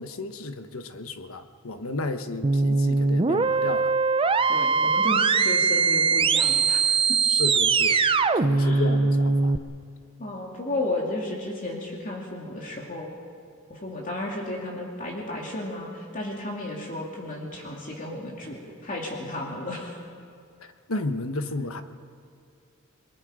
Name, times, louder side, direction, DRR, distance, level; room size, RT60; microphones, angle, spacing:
voice 1, 0.0-3.9 7.3-8.0 8.3-9.6 20.9-21.8, left 2 dB, 85° left, 8 dB, 1.2 m, -33 dB
sound 1, 2.4-9.6, right 4 dB, 25° right, 0.5 m, -21 dB
voice 2, 4.5-7.2 8.5-8.9 10.2-13.1 13.7-20.0, left 1 dB, 40° left, -2 dB, 2.7 m, -33 dB
29.5 x 22.0 x 5.0 m, 2.5 s
head